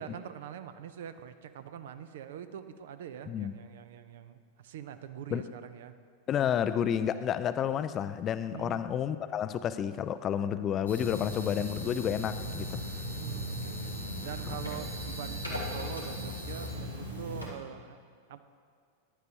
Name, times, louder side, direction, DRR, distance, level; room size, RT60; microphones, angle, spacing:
voice 1, 0.0-5.9 8.5-8.9 13.1-13.9 14.2-18.0 18.3-18.4, right 9 dB, 55° right, 11 dB, 0.5 m, -44 dB
voice 2, 6.3-12.8, left 9 dB, 30° left, 12 dB, 0.3 m, -30 dB
sound 1, 10.9-17.5, equal, 90° right, 1.6 m, -37 dB
14.5 x 10.5 x 2.8 m, 2.1 s
figure-of-eight pair, 90°, 0 cm